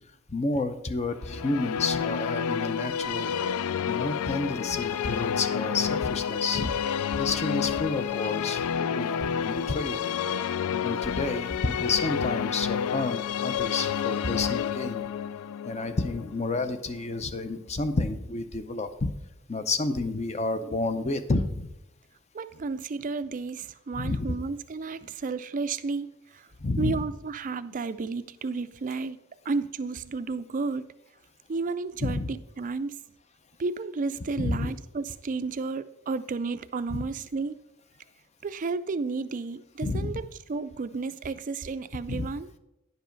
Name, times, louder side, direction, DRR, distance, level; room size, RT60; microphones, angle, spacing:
voice 1, 0.3-3.3 3.9-6.7 7.1-10.0 10.7-15.0 15.6-19.1 19.5-21.7 23.9-24.4 26.6-27.0 32.0-32.3 34.4-34.7 36.9-37.0 39.8-40.1 42.1-42.3, left 3 dB, 30° left, 10 dB, 0.6 m, -30 dB
sound 1, 1.2-17.3, left 8 dB, 80° left, 0.3 m, -30 dB
voice 2, 22.3-26.1 26.3-26.5 26.8-29.2 29.5-30.9 31.5-32.9 33.6-37.6 38.4-42.5, right 4 dB, 35° right, 13 dB, 0.4 m, -32 dB
10.0 x 5.4 x 5.2 m, 0.91 s
head